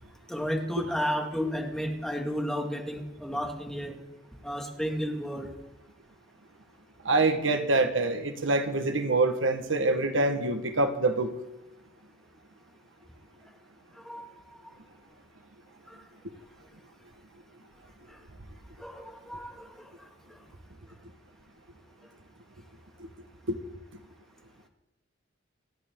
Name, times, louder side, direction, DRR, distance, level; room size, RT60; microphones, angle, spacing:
voice 1, 0.3-4.0 4.4-5.5 14.0-14.2 14.6-14.7 15.9-16.0 18.1-18.2 18.8-19.9, equal, 5° left, 1 dB, 2.2 m, -32 dB
voice 2, 7.0-11.3 23.5-23.6, right 2 dB, 80° right, 7 dB, 1.5 m, -25 dB
28.0 x 11.5 x 3.8 m, 0.93 s
head